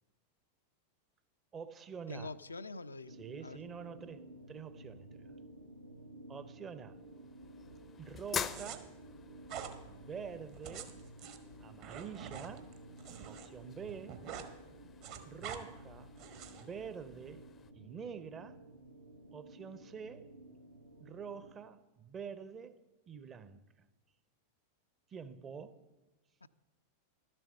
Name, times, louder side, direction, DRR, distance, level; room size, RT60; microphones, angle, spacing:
voice 1, 1.5-2.3 3.2-5.3 6.3-7.0 8.0-8.9 9.9-10.9 11.6-12.7 13.3-14.2 15.2-16.1 16.4-17.4 17.7-18.6 19.3-20.3 21.0-22.8 23.1-23.6 25.1-25.8, right 6 dB, 25° right, 0.6 m, -46 dB
voice 2, 2.1-3.1 3.4-3.6 26.4-26.5, left 3 dB, 80° left, 0.3 m, -44 dB
sound 1, 3.1-21.5, right 1 dB, 85° right, 1.4 m, -54 dB
sound 2, 6.9-17.7, left 7 dB, 25° left, 0.5 m, -48 dB
sound 3, 8.5-8.8 9.5-9.8 10.5-13.5 13.8-14.5 14.8-15.6 16.2-16.7, right 8 dB, 45° right, 1.1 m, -46 dB
12.0 x 7.6 x 6.4 m
figure-of-eight pair, 90°, 0 cm